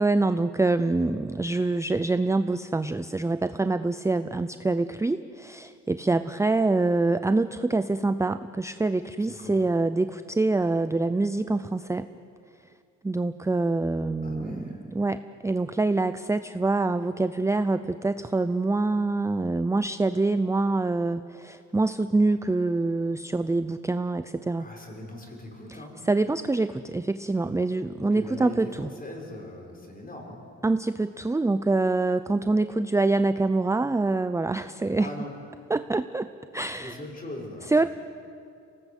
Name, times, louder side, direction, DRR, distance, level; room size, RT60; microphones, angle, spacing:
voice 1, 0.0-12.1 13.0-24.7 26.1-28.9 30.6-35.1 35.7-37.0 37.7-37.9, right 3 dB, 10° right, 11 dB, 0.6 m, -25 dB
voice 2, 9.2-9.6 14.2-14.8 24.6-26.0 28.1-30.4 35.0-35.3 36.7-37.9, left 1 dB, 30° left, 1 dB, 6.2 m, -40 dB
25.0 x 18.5 x 8.3 m, 2.5 s
cardioid pair, 90°, 30 cm